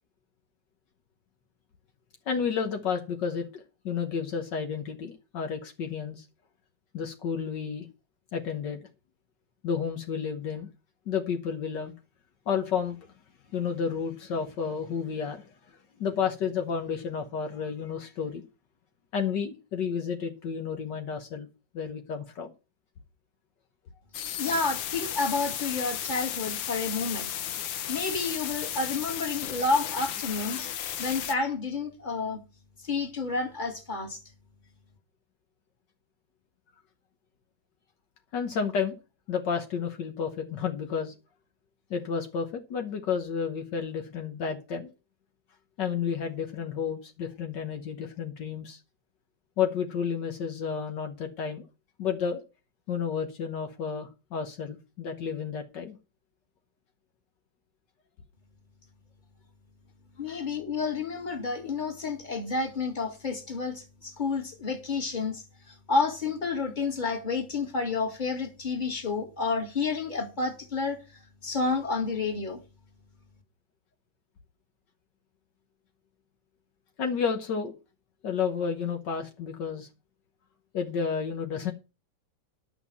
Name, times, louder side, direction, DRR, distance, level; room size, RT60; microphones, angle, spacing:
voice 1, 2.3-6.3 6.9-7.9 8.3-8.8 9.6-10.7 11.1-11.9 12.5-13.0 13.5-15.5 16.0-18.4 19.1-21.5 21.7-22.5 38.3-39.0 39.3-41.1 41.9-44.9 45.8-48.8 49.6-51.6 52.0-52.4 52.9-56.0 60.3-60.5 77.0-77.7 78.2-79.9 80.7-81.7, left 6 dB, 70° left, 1.7 m, -31 dB
sound 1, 24.1-31.3, left 10 dB, 90° left, 1.7 m, -34 dB
voice 2, 24.4-27.3 27.9-30.7 31.0-32.4 32.8-34.2 60.2-71.0 71.4-72.6, left 4 dB, 25° left, 2.3 m, -30 dB
11.5 x 6.2 x 6.9 m
omnidirectional pair, 2.0 m